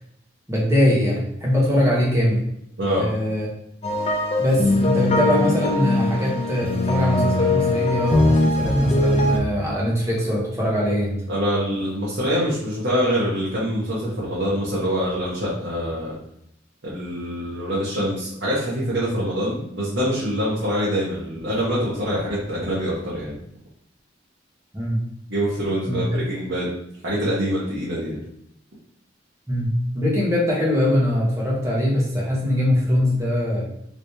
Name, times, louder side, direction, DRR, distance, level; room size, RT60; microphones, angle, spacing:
voice 1, 0.5-2.5 3.0-3.5 4.4-11.2 24.7-25.0 25.9-26.3 29.5-33.6, left 1 dB, 15° right, -5 dB, 1.1 m, -22 dB
sound 1, 3.8-9.4, left 2 dB, 35° left, 0.5 m, -21 dB
voice 2, 11.3-16.2 16.8-23.4 25.3-26.7 27.0-28.2, equal, 70° right, -8 dB, 1.0 m, -25 dB
3.2 x 3.0 x 2.7 m, 0.75 s
head